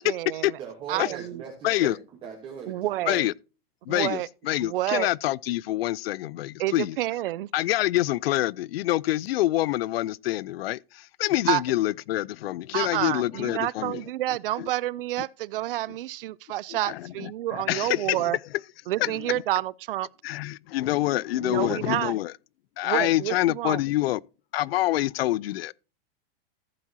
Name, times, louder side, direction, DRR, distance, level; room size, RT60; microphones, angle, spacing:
voice 1, 0.0-0.6 0.9-1.4 2.7-3.3 3.9-4.3 4.6-5.1 6.6-7.5 11.5-11.6 12.7-18.4 18.9-20.1 21.4-22.1 22.8-23.8, right 15 dB, 65° right, 0.5 m, -29 dB
voice 2, 0.6-3.1, right 7 dB, 15° right, 1.2 m, -40 dB
voice 3, 1.6-2.0 3.1-3.3 3.9-7.0 7.5-14.0 14.6-14.7 16.8-18.3 19.0-19.4 20.2-22.3 22.8-24.2 24.5-25.7, left 15 dB, 80° left, 0.5 m, -26 dB
14.5 x 7.4 x 2.7 m
supercardioid pair, 180°, 30 cm